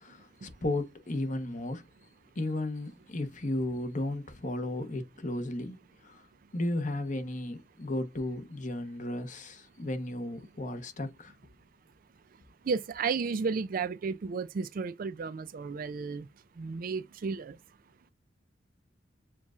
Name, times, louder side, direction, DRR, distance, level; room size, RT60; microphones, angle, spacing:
voice 1, 0.0-1.9 2.4-5.8 6.0-6.2 6.5-11.3, left 1 dB, 40° left, 1.0 m, -34 dB
voice 2, 12.7-16.3 16.6-17.6, right 5 dB, 50° right, 0.4 m, -33 dB
7.1 x 2.5 x 2.4 m
head